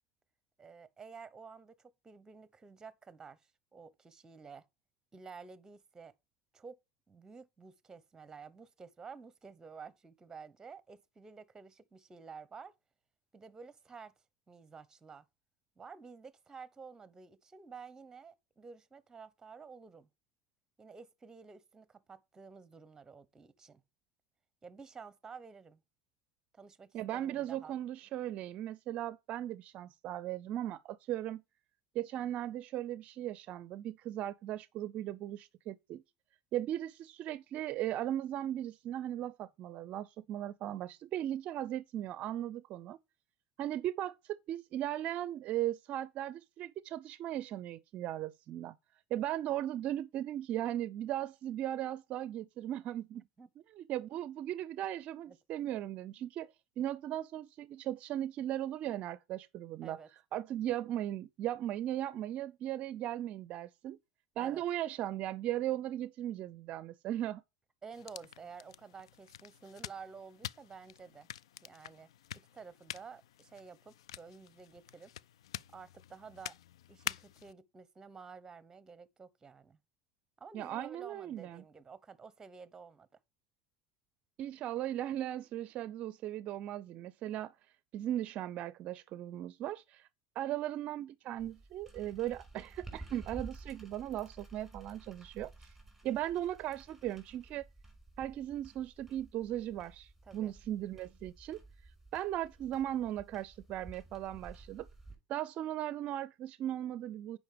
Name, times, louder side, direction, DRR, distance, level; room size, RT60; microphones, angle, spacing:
voice 1, 0.6-3.4 3.7-4.7 5.1-6.1 6.5-6.8 7.1-12.7 13.3-14.1 14.5-15.2 15.8-20.1 20.8-23.8 24.6-25.8 26.5-27.7 53.1-53.5 59.8-60.1 64.4-64.6 67.8-71.3 71.6-75.1 75.7-76.5 76.9-79.8 80.4-83.1 100.2-100.5, right 5 dB, 20° right, 1.1 m, -51 dB
voice 2, 26.9-31.4 31.9-36.0 36.5-43.0 43.6-48.7 49.1-53.2 53.8-60.0 60.3-64.0 64.4-67.4 80.5-81.6 84.4-87.5 87.9-90.1 90.4-95.7 96.0-97.7 98.2-101.6 102.1-104.9 105.3-107.4, right 12 dB, 55° right, 0.5 m, -37 dB
sound 1, 67.9-77.5, left 12 dB, 90° left, 0.4 m, -47 dB
sound 2, 91.4-105.1, right 2 dB, 5° right, 5.6 m, -53 dB
9.1 x 5.3 x 5.1 m
hypercardioid pair, 90°, 3 cm